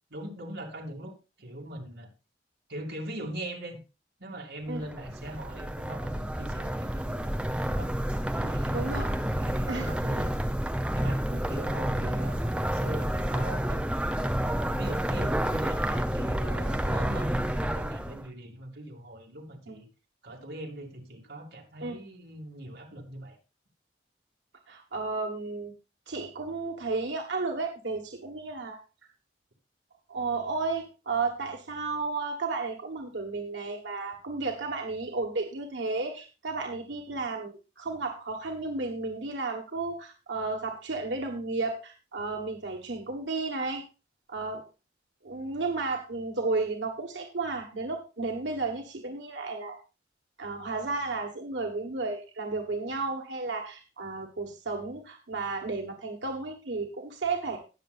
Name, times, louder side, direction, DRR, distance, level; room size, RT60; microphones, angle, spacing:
voice 1, 0.1-2.1 2.7-3.8 4.2-7.4 7.7-7.9 8.3-8.8 9.1-10.4 10.9-11.2 11.5-14.0 14.7-19.9 20.2-23.4, right 1 dB, 70° right, -1 dB, 2.5 m, -41 dB
sound 1, 4.8-18.3, right 1 dB, 5° right, 0.6 m, -29 dB
voice 2, 8.7-9.1 9.7-9.9 11.3-11.4 19.7-19.8 21.8-22.0 24.7-25.7 26.1-28.8 30.1-43.8 44.3-44.6 45.2-49.8 50.4-57.6, right 3 dB, 85° right, 2 dB, 1.5 m, -33 dB
19.5 x 6.7 x 2.5 m, 0.30 s
head